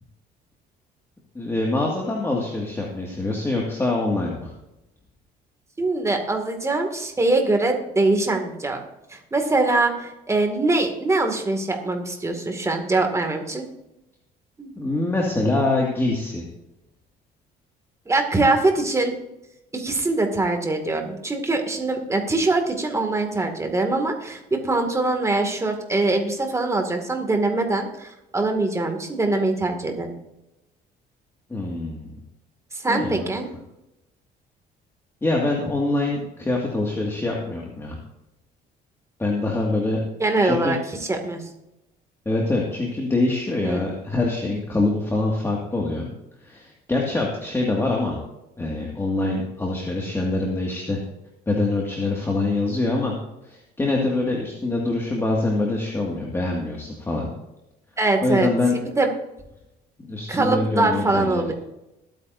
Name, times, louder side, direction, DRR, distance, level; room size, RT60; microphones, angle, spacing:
voice 1, 1.3-4.5 14.8-16.5 31.5-32.1 32.9-33.3 35.2-38.0 39.2-40.0 40.4-40.8 42.3-46.1 46.4-48.2 48.6-51.0 51.5-53.1 53.4-57.3 58.2-58.8 60.1-61.5, left 2 dB, 15° left, -2 dB, 2.0 m, -24 dB
voice 2, 5.8-8.8 9.1-13.7 14.6-14.7 18.1-19.1 19.7-30.1 32.7-33.5 40.2-40.8 41.1-41.4 43.6-43.8 58.0-59.1 60.3-61.5, right 2 dB, 15° right, 4 dB, 2.2 m, -23 dB
21.0 x 9.1 x 2.7 m, 0.92 s
cardioid pair, 110°, 17 cm